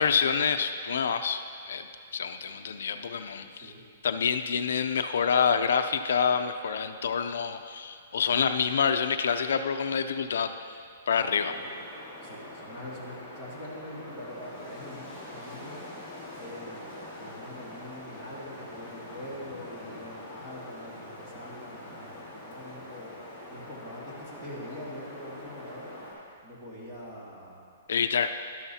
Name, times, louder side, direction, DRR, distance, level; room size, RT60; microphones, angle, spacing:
voice 1, 0.0-1.4 1.7-3.7 4.0-10.5 11.1-11.5 27.9-28.3, left 6 dB, 70° left, 8 dB, 0.4 m, -27 dB
Wind, 11.3-26.1, left 1 dB, ahead, 2.4 m, -44 dB
voice 2, 12.2-15.8 16.3-23.1 23.5-25.9 26.4-27.6, equal, 20° right, -6 dB, 1.9 m, -44 dB
12.0 x 11.5 x 2.8 m, 2.3 s
hypercardioid pair, 180°, 0 cm